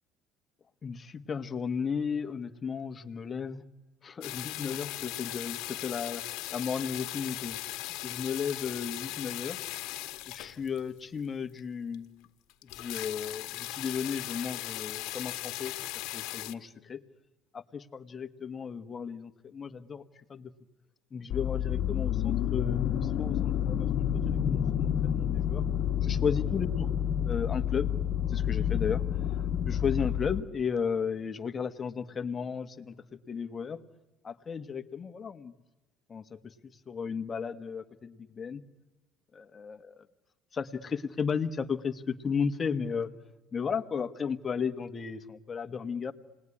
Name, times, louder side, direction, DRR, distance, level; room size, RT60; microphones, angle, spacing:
voice 1, 0.8-3.6 4.0-9.6 10.3-12.2 12.6-15.7 16.1-17.0 17.5-20.0 20.3-20.5 21.1-25.6 26.0-26.9 27.2-27.9 28.3-33.8 34.2-35.5 36.1-36.5 36.9-38.6 39.3-40.1 40.5-43.1 43.5-46.1, left 6 dB, 30° left, 10 dB, 1.3 m, -34 dB
sound 1, 4.2-11.0 11.6-11.7 11.9-12.0 12.2-12.3 12.5-16.5, left 18 dB, 75° left, 1.3 m, -38 dB
sound 2, 21.3-30.4, left 9 dB, 60° left, 1.3 m, -29 dB
29.5 x 20.0 x 9.9 m, 1.1 s
cardioid pair, 105°, 0 cm